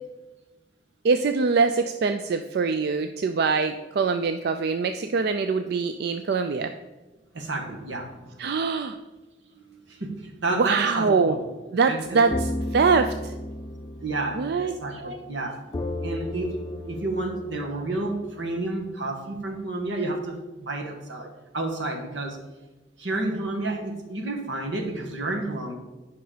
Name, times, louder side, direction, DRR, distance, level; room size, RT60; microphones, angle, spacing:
voice 1, 1.0-6.7 8.4-9.0 10.5-11.4 11.7-13.3 14.3-14.8, right 4 dB, 60° right, 8 dB, 0.4 m, -23 dB
voice 2, 7.3-8.4 9.9-11.5 11.9-12.2 14.0-15.6 16.0-22.4 23.0-25.7, right 2 dB, 85° right, 2 dB, 1.5 m, -30 dB
sound 1, 12.0-15.1 15.7-18.6, left 1 dB, 20° left, 0.5 m, -34 dB
10.0 x 5.4 x 5.0 m, 1.1 s
head